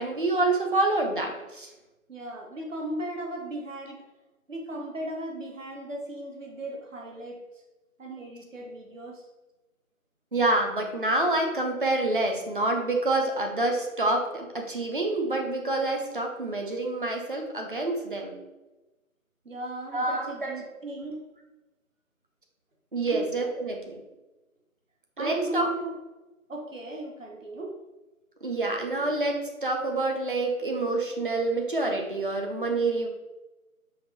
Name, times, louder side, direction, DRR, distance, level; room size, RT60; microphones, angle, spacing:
voice 1, 0.0-1.7 10.3-18.4 19.9-20.5 22.9-24.0 25.2-25.7 28.4-33.1, right 2 dB, 40° right, 2 dB, 0.6 m, -27 dB
voice 2, 2.1-4.0 4.5-7.4 8.0-9.3 19.4-21.2 23.1-23.2 25.2-26.0 26.5-27.7, right 1 dB, 60° right, 0 dB, 1.0 m, -36 dB
5.1 x 2.5 x 4.2 m, 1.1 s
figure-of-eight pair, 155°, 43 cm